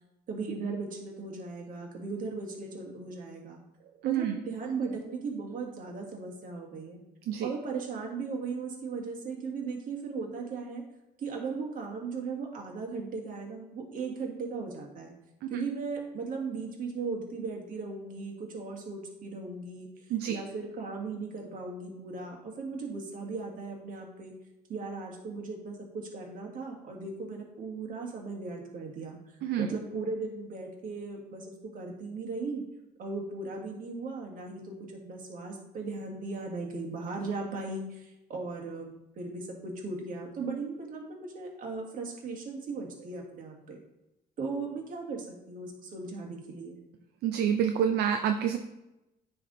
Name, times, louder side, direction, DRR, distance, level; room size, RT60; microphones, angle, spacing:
voice 1, 0.3-3.6 4.0-7.0 7.4-10.8 11.2-15.1 15.5-19.9 20.3-24.3 24.7-29.2 29.6-32.6 33.0-34.7 35.0-43.8 44.4-46.8, right 4 dB, 55° right, 0 dB, 1.7 m, -37 dB
voice 2, 4.0-4.4 7.3-7.5 20.1-20.4 29.4-29.7 47.2-48.6, right 9 dB, 70° right, 6 dB, 0.5 m, -27 dB
9.9 x 3.4 x 3.9 m, 0.95 s
cardioid pair, 110°, 17 cm